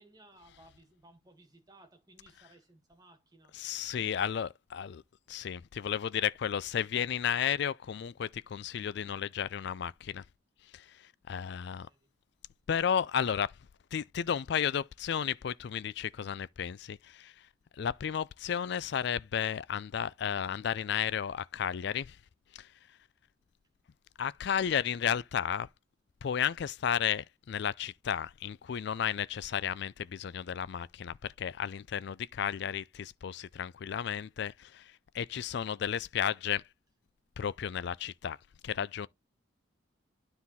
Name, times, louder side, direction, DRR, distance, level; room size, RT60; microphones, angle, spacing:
voice 1, 0.0-3.5 4.0-4.2 11.3-12.1, right 1 dB, 20° right, 1.9 m, -60 dB
voice 2, 3.5-5.0 5.3-10.2 10.7-11.9 12.7-13.5 13.9-17.5 17.7-22.2 22.5-22.7 24.2-25.7 26.2-36.6 37.4-38.4 38.6-39.1, left 8 dB, 55° left, 0.3 m, -33 dB
9.7 x 3.8 x 4.1 m
head